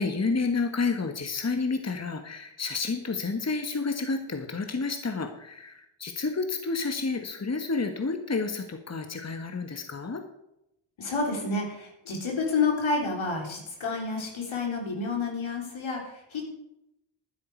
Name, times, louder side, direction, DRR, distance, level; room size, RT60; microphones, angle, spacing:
voice 1, 0.0-10.2, left 4 dB, 35° left, 6 dB, 1.5 m, -30 dB
voice 2, 11.0-16.5, left 4 dB, 75° left, 0 dB, 3.7 m, -29 dB
12.0 x 9.9 x 4.6 m, 0.83 s
supercardioid pair, 40°, 48 cm